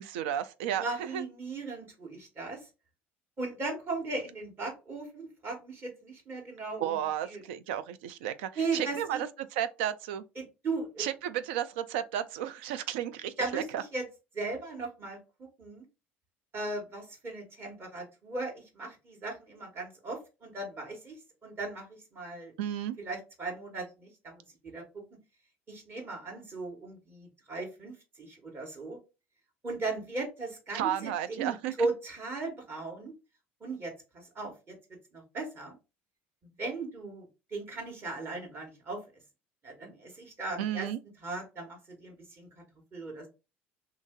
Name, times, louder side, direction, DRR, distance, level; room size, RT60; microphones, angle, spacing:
voice 1, 0.0-1.2 6.8-10.2 11.0-13.8 22.6-23.0 30.7-31.9 40.6-41.0, right 10 dB, 70° right, 0.3 m, -33 dB
voice 2, 0.7-2.6 3.4-7.0 7.2-7.4 8.6-9.2 10.4-11.1 13.4-14.0 14.3-15.8 16.5-21.1 21.4-22.5 23.0-24.4 24.7-25.0 25.7-29.0 29.6-33.1 33.6-34.8 35.1-35.7 36.4-39.0 39.6-40.9 41.2-42.6 42.9-43.3, right 3 dB, 35° right, 1.2 m, -37 dB
2.8 x 2.6 x 3.5 m
hypercardioid pair, 65°, 6 cm